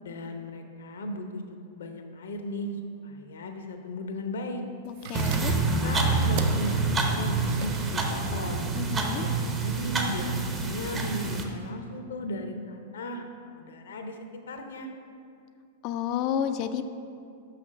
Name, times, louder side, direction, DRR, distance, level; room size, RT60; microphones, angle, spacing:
voice 1, 0.0-2.7 3.0-4.6 5.4-8.7 9.2-13.2 13.5-14.2 14.5-14.9, left 1 dB, 70° left, 5 dB, 0.7 m, -36 dB
voice 2, 4.8-5.5 8.7-9.2 15.8-16.8, left 9 dB, 45° left, 10 dB, 0.4 m, -30 dB
sound 1, 4.9-11.7, right 5 dB, 55° right, 0.5 m, -41 dB
sound 2, 5.1-11.4, right 3 dB, 25° right, 0.8 m, -27 dB
6.1 x 5.8 x 5.1 m, 2.5 s
figure-of-eight pair, 100°, 0 cm